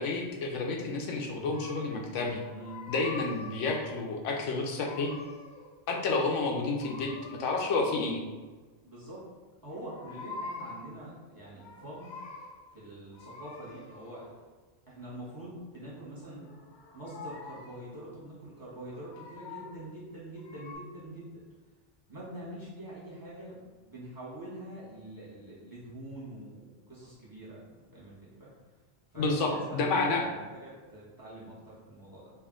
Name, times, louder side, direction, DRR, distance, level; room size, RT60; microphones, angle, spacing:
voice 1, 0.0-2.4 2.9-5.1 5.9-8.2 29.2-30.2, left 3 dB, 85° left, 1 dB, 0.9 m, -30 dB
sound 1, 1.4-2.0 2.3-4.0 4.6-5.8 6.8-8.1 9.7-10.9 11.4-12.6 13.1-14.4 16.2-17.9 18.7-19.9 20.4-20.7, left 3 dB, 55° left, 0.5 m, -45 dB
voice 2, 8.8-9.2 9.6-12.1 12.7-14.3 14.9-16.5 16.9-21.4 22.1-27.6 27.9-28.5 29.1-32.3, right 1 dB, 20° right, -8 dB, 1.0 m, -45 dB
3.5 x 2.5 x 3.6 m, 1.3 s
omnidirectional pair, 1.3 m